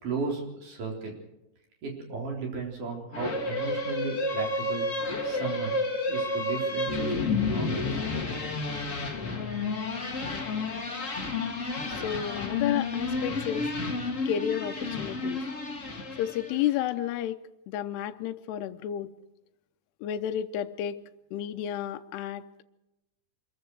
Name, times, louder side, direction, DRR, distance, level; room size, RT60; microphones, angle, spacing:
voice 1, 0.0-1.1 1.8-4.9 5.2-5.7 6.1-8.3, right 4 dB, 45° right, 0 dB, 5.0 m, -35 dB
sound 1, 3.1-16.7, left 3 dB, 35° left, 1.2 m, -31 dB
voice 2, 12.0-13.7 14.3-15.5 16.2-19.1 20.0-21.0 21.3-22.4, left 10 dB, 75° left, 7 dB, 2.7 m, -31 dB
25.5 x 22.0 x 4.7 m, 0.93 s
omnidirectional pair, 5.1 m